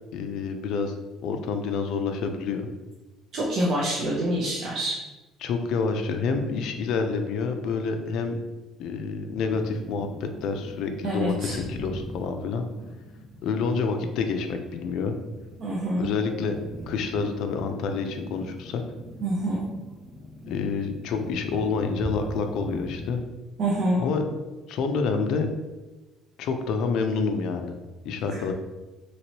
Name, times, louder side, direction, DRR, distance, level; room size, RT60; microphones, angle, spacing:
voice 1, 0.1-0.9 1.2-2.7 5.4-8.4 8.8-12.6 13.4-15.2 16.0-16.5 16.9-18.8 20.5-23.2 24.0-24.2 24.7-25.5 26.4-27.7 28.0-28.5, left 5 dB, 65° left, 6 dB, 0.4 m, -28 dB
voice 2, 3.3-5.0 11.0-11.6 15.6-16.1 19.2-19.7 23.6-24.0 28.3-28.4, right 1 dB, 45° right, -5 dB, 0.5 m, -26 dB
sound 1, 9.5-23.2, left 1 dB, 30° right, 1.1 m, -40 dB
3.0 x 2.9 x 2.8 m, 1.1 s
cardioid pair, 160°, 0 cm